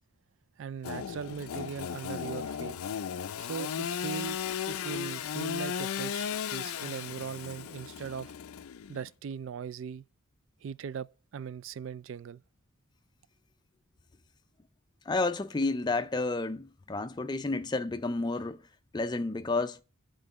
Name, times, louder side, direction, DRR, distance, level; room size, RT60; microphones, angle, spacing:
voice 1, 0.6-2.7 3.4-4.4 4.7-8.3 8.9-10.0 10.6-12.4, right 7 dB, 60° right, 0.3 m, -39 dB
Engine / Sawing, 0.8-9.1, left 8 dB, 85° left, 0.4 m, -36 dB
voice 2, 15.1-18.6 18.9-19.8, left 3 dB, 20° left, 0.4 m, -30 dB
8.7 x 3.8 x 7.1 m
head